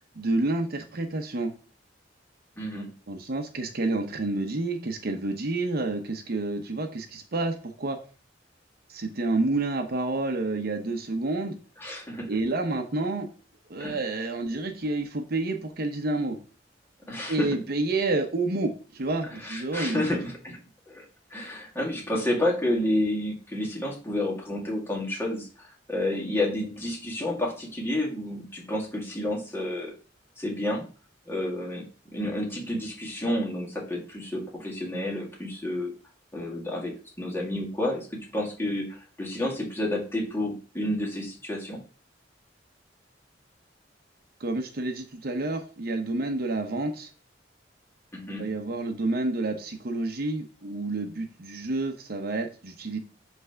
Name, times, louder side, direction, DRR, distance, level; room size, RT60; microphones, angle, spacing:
voice 1, 0.2-1.5 3.1-8.0 8.9-11.6 12.3-13.3 13.7-16.4 17.3-20.0 44.4-47.1 48.4-53.0, right 2 dB, 55° right, 6 dB, 0.8 m, -29 dB
voice 2, 2.6-2.9 11.8-12.3 13.8-14.0 17.1-17.5 19.4-20.6 20.9-21.0 21.3-29.9 30.4-30.9 31.3-36.0 36.3-41.8 48.1-48.5, left 1 dB, 15° left, -3 dB, 1.9 m, -30 dB
6.0 x 3.3 x 5.7 m, 0.36 s
head